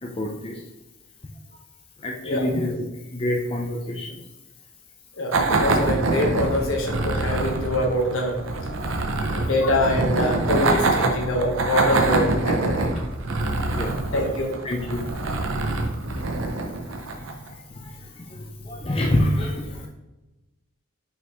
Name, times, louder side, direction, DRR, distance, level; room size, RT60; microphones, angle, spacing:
voice 1, 0.0-0.6 1.5-1.6 2.0-2.8 3.1-4.2 9.2-9.5 13.4-14.0 14.6-15.4 16.0-19.9, left 1 dB, 25° left, 0 dB, 0.5 m, -28 dB
voice 2, 5.2-8.4 9.3-12.9 14.1-14.5, left 1 dB, 70° left, 2 dB, 1.2 m, -24 dB
sound 1, 5.3-17.5, right 2 dB, 65° right, 0.7 m, -25 dB
5.8 x 5.4 x 3.1 m, 1.0 s
head